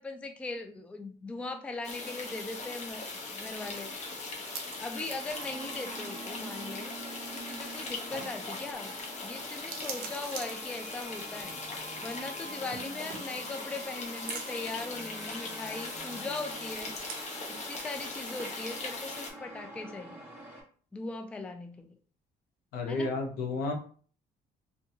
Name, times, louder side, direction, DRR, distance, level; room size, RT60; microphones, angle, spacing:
voice 1, 0.0-3.9 4.8-6.9 7.3-8.9 9.2-11.5 12.0-16.9 17.5-20.2 20.9-21.9 22.9-23.1, left 3 dB, 5° left, 5 dB, 0.3 m, -39 dB
sound 1, 1.8-19.3, left 3 dB, 40° left, 0.7 m, -40 dB
sound 2, 2.4-19.4, right 5 dB, 60° right, 0.6 m, -49 dB
sound 3, 5.3-20.6, right 1 dB, 10° right, 1.5 m, -47 dB
voice 2, 22.7-23.7, left 3 dB, 75° left, 3 dB, 0.8 m, -31 dB
2.5 x 2.2 x 2.7 m, 0.43 s
cardioid pair, 110°, 17 cm